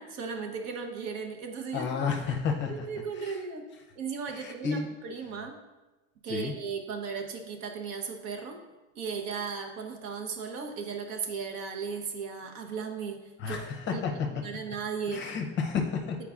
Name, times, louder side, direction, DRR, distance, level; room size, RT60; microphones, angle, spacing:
voice 1, 0.0-1.9 2.7-3.7 4.0-5.6 6.2-8.6 9.0-14.0 14.4-15.3, right 5 dB, 55° right, 3 dB, 0.9 m, -36 dB
voice 2, 1.7-2.9 3.2-3.4 4.3-4.9 6.3-6.5 13.4-14.1 15.1-16.2, left 5 dB, 35° left, 3 dB, 0.6 m, -31 dB
8.3 x 4.7 x 2.4 m, 1.1 s
supercardioid pair, 140°, 34 cm